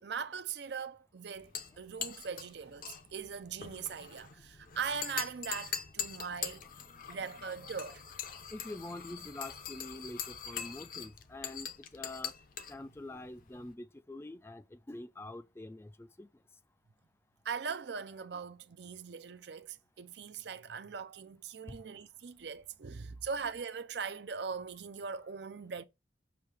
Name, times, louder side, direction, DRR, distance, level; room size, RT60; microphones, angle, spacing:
voice 1, 0.0-6.7 7.1-8.0 17.4-25.8, right 6 dB, 65° right, 0.5 m, -40 dB
sound 1, 1.4-13.7, left 8 dB, 45° left, 0.6 m, -43 dB
voice 2, 8.5-12.3 12.7-16.3 21.7-21.8, left 2 dB, 15° left, 0.3 m, -45 dB
6.9 x 2.9 x 4.8 m
head